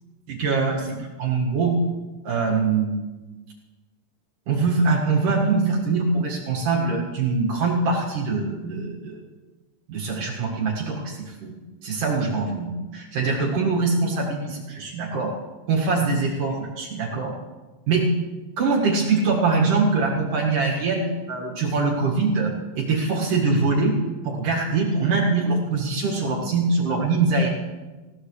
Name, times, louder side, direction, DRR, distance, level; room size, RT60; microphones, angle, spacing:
voice 1, 0.3-0.8 1.2-1.8 2.2-3.0 4.5-9.2 9.9-11.5 11.8-15.4 15.7-17.3 17.9-18.1 18.6-24.0 24.2-27.5, right 4 dB, 55° right, -2 dB, 3.2 m, -23 dB
20.0 x 16.5 x 3.3 m, 1.2 s
omnidirectional pair, 4.8 m